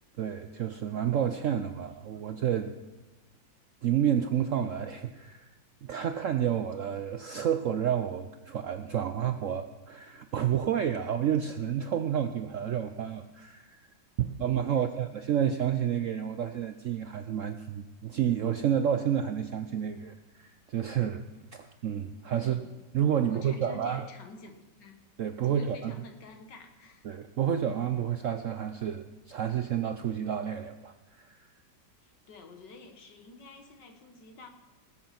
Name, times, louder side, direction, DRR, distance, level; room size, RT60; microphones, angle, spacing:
voice 1, 0.2-2.7 3.8-5.5 5.8-13.9 14.2-21.2 21.5-22.6 22.9-24.1 25.2-25.9 27.0-31.4, right 9 dB, 65° right, 8 dB, 0.7 m, -30 dB
voice 2, 22.4-22.7 23.2-25.0 25.4-27.1 32.0-34.5, left 3 dB, 70° left, 5 dB, 2.1 m, -49 dB
19.5 x 7.8 x 5.9 m, 1.1 s
omnidirectional pair, 2.0 m